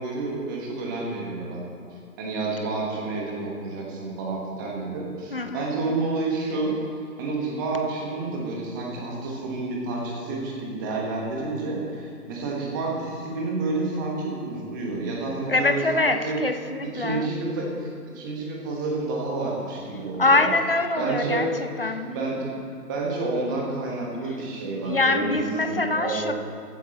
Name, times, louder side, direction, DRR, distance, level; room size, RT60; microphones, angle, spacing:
voice 1, 0.0-1.6 2.2-6.7 7.2-16.4 16.8-20.5 21.0-21.5 22.1-22.5 22.9-26.3, right 3 dB, 15° right, -2 dB, 1.1 m, -29 dB
voice 2, 5.3-5.7 15.5-17.3 20.2-21.5 21.8-22.1 24.9-26.3, left 2 dB, 40° left, 8 dB, 0.5 m, -24 dB
14.5 x 9.9 x 4.2 m, 2.3 s
figure-of-eight pair, 145°, 48 cm